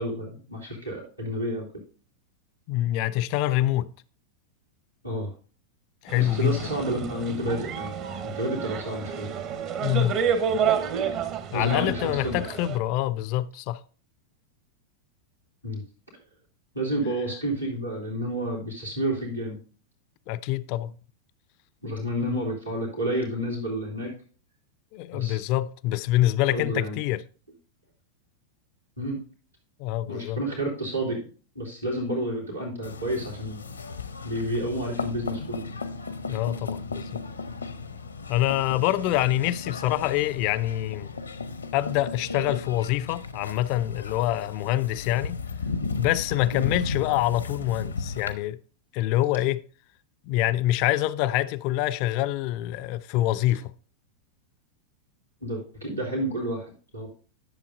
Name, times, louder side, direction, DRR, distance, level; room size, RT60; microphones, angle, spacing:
voice 1, 0.0-1.7 5.0-5.3 6.1-7.9 8.4-9.3 11.5-12.4 15.6-15.8 16.7-19.6 21.8-24.1 25.1-25.4 26.5-27.0 29.0-29.2 30.1-31.2 31.5-33.6 34.2-35.6 46.5-46.7 55.4-57.1, right 1 dB, 90° right, 2.5 m, -30 dB
voice 2, 2.7-3.9 6.0-6.7 9.8-10.2 11.5-13.8 20.3-20.9 22.2-22.4 24.9-27.2 29.8-30.4 36.3-37.2 38.3-41.1 41.7-45.4 46.0-48.6 48.9-49.6 50.3-53.7, left 14 dB, 45° left, 0.3 m, -25 dB
sound 1, 6.1-12.8, right 7 dB, 40° right, 0.8 m, -29 dB
sound 2, 32.8-48.3, left 4 dB, 75° left, 0.6 m, -35 dB
11.0 x 6.9 x 2.5 m
figure-of-eight pair, 90°, 0 cm